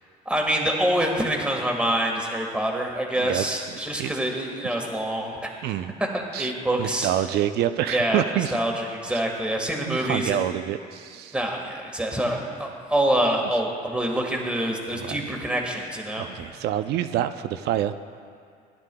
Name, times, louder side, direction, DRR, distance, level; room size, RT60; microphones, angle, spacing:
voice 1, 0.2-5.5 6.0-7.1 7.9-8.2 8.5-10.4 11.3-16.2, right 1 dB, 5° right, 0 dB, 1.5 m, -26 dB
voice 2, 3.2-4.1 5.6-5.9 6.3-6.5 6.8-8.6 9.1-9.2 9.9-11.4 14.9-15.2 16.2-18.0, right 11 dB, 75° right, 11 dB, 0.5 m, -27 dB
16.5 x 11.0 x 2.3 m, 2.3 s
cardioid pair, 110°, 17 cm